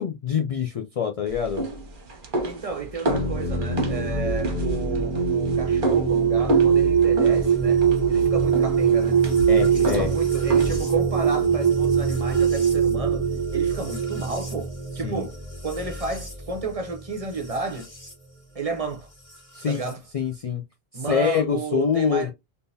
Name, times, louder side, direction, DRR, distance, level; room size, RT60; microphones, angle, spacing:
voice 1, 0.0-1.7 9.5-10.1 15.0-15.3 19.5-19.8 20.1-20.6 20.9-22.3, left 7 dB, 55° left, 0.4 m, -25 dB
sound 1, 1.3-11.0, right 1 dB, 55° right, 1.1 m, -31 dB
voice 2, 2.4-9.2 9.7-13.3 13.5-15.4 15.6-17.9 18.5-19.1 19.7-20.0 20.9-22.3, right 3 dB, 40° right, 0.7 m, -32 dB
sound 2, 3.1-18.1 19.3-19.9, right 6 dB, 30° left, 1.4 m, -23 dB
3.6 x 2.7 x 2.6 m
omnidirectional pair, 1.0 m